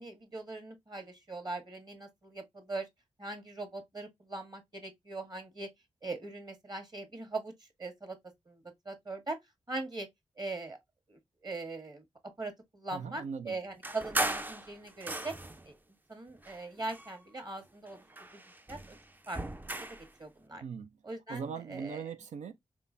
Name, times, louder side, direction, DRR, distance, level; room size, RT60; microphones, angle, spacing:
voice 1, 0.0-2.9 3.2-5.7 6.0-8.2 8.5-9.4 9.7-10.1 10.4-10.8 11.1-15.3 15.6-15.8 16.1-18.0 18.3-18.4 18.7-19.0 19.3-19.4 20.2-20.6 21.0-22.0, right 2 dB, 35° right, 1.6 m, -41 dB
voice 2, 12.9-13.6 20.6-20.9 21.3-22.5, right 6 dB, 75° right, 0.5 m, -40 dB
sound 1, 13.8-15.7 16.4-17.5 17.9-20.1, right 1 dB, 15° right, 0.5 m, -37 dB
3.7 x 3.0 x 2.6 m
supercardioid pair, 40°, 12 cm